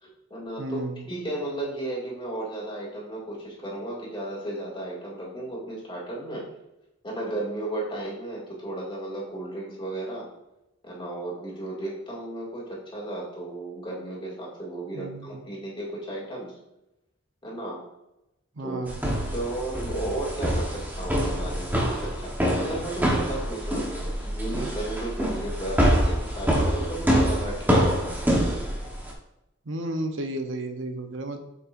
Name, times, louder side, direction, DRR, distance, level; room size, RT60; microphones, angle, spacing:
voice 1, 0.0-6.5 7.0-10.3 10.8-16.5 17.4-17.8 18.6-18.8 19.1-28.2, right 1 dB, 25° left, -5 dB, 2.2 m, -34 dB
voice 2, 0.6-1.0 14.9-15.4 18.6-19.0 29.7-31.4, right 1 dB, 70° right, 5 dB, 0.9 m, -32 dB
sound 1, 18.9-29.1, equal, 10° right, 1.1 m, -25 dB
7.9 x 5.7 x 2.6 m, 0.90 s
head